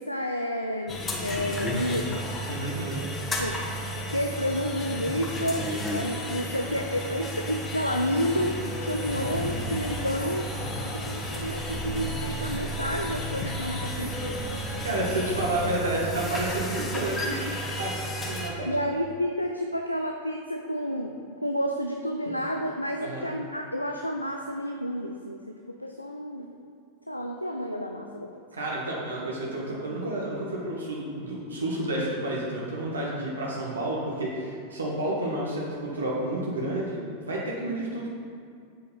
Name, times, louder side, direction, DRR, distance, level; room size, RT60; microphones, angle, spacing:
voice 1, 0.0-2.2 3.4-3.6 4.1-10.5 10.8-14.4 15.0-15.1 15.6-15.7 18.7-26.5 27.1-28.4, equal, 90° left, 3 dB, 0.5 m, -30 dB
sound 1, 0.9-18.5, equal, 20° left, 1.7 m, -32 dB
voice 2, 2.5-3.0 14.5-18.8 22.2-22.3 23.0-23.3 28.5-38.1, right 1 dB, 70° right, -4 dB, 1.6 m, -31 dB
10.0 x 7.9 x 4.0 m, 2.3 s
figure-of-eight pair, 90°, 0 cm